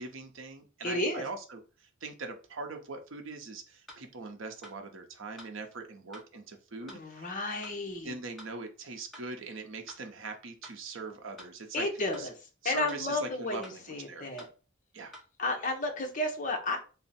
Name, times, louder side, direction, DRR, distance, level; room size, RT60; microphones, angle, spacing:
voice 1, 0.0-7.3 8.0-11.9 12.2-12.3 12.6-13.8 14.1-14.3 14.9-15.1, right 3 dB, 70° right, 4 dB, 0.7 m, -41 dB
voice 2, 0.8-1.2 6.8-8.1 11.7-12.3 12.6-14.5 15.4-16.8, left 2 dB, 40° left, 3 dB, 0.7 m, -32 dB
sound 1, 3.9-4.0 4.6-4.8 5.4-5.5 6.1-6.3 6.9-7.0 7.6-7.8 8.4-8.5 9.1-9.3 9.9-10.0 10.6-10.8 11.4-11.5 12.1-12.3 12.9-13.0 13.6-13.8 14.4-14.5 15.1-15.2, equal, ahead, 1.0 m, -49 dB
3.5 x 2.1 x 4.1 m, 0.35 s
head